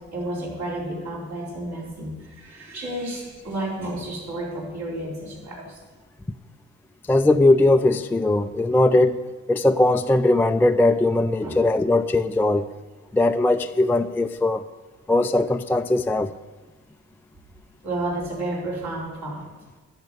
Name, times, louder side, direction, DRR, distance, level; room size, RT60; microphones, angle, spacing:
voice 1, 0.1-5.7 11.4-11.6 17.8-19.4, right 1 dB, 65° right, -4 dB, 4.4 m, -31 dB
voice 2, 7.1-9.2 9.5-12.7 13.1-14.6 15.1-16.3, left 2 dB, 5° left, 7 dB, 0.3 m, -19 dB
11.0 x 6.6 x 8.2 m, 1.3 s
cardioid pair, 90°, 30 cm